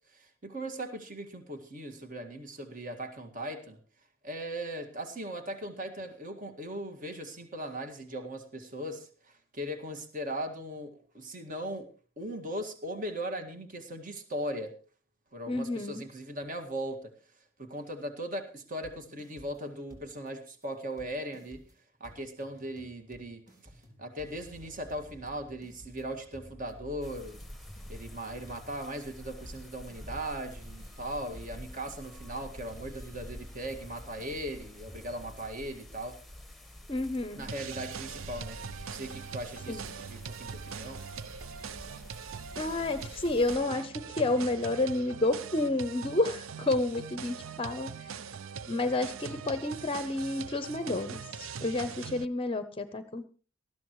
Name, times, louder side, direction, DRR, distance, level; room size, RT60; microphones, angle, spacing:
voice 1, 0.1-3.8 4.2-11.9 12.2-14.8 15.3-17.1 17.6-21.7 22.0-27.4 27.9-36.2 37.3-38.6 38.9-41.0, right 1 dB, 40° right, 6 dB, 1.9 m, -39 dB
voice 2, 15.5-16.0 36.9-37.4 39.7-39.9 42.6-48.1 48.7-53.3, left 2 dB, 25° left, 11 dB, 0.7 m, -30 dB
sound 1, 18.8-19.6 19.9-20.3 20.6-20.7 21.0-35.4, equal, 20° right, 3.8 m, -53 dB
sound 2, 27.0-43.6, left 1 dB, ahead, 1.3 m, -48 dB
sound 3, 37.5-52.3, right 6 dB, 80° right, 0.6 m, -42 dB
19.5 x 13.5 x 3.1 m, 0.38 s
head